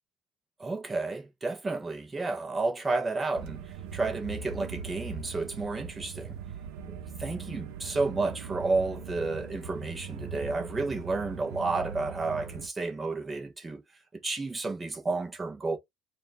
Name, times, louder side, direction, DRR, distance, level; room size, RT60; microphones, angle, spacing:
voice 1, 0.6-6.4 6.9-13.8 14.1-15.8, right 3 dB, 15° right, 0.8 m, -31 dB
sound 1, 3.3-12.7, right 6 dB, 80° right, 0.8 m, -40 dB
4.2 x 2.5 x 3.4 m
cardioid pair, 165°, 0 cm